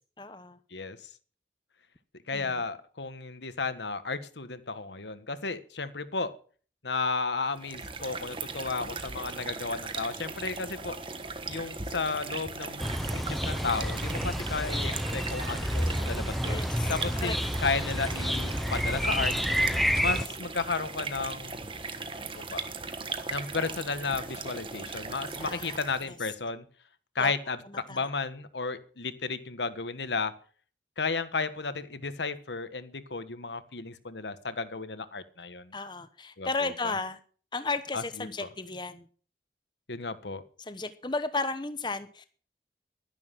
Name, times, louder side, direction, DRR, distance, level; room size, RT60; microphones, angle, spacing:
voice 1, 0.2-0.6 2.3-2.6 16.5-16.9 17.2-17.3 25.4-26.2 27.2-27.3 27.9-28.0 35.7-37.2 37.5-39.1 40.6-42.3, left 3 dB, 25° left, 1.0 m, -34 dB
voice 2, 0.7-1.1 2.3-6.3 6.8-11.0 11.5-12.9 13.1-19.3 20.0-21.6 22.1-22.6 23.3-26.6 27.1-30.3 31.0-35.7 36.4-37.0 37.9-38.5 39.9-40.4, left 4 dB, 90° left, 1.4 m, -33 dB
sound 1, 7.5-26.1, right 4 dB, 30° right, 1.5 m, -38 dB
sound 2, 12.8-20.3, equal, ahead, 0.7 m, -29 dB
12.0 x 11.0 x 7.5 m
head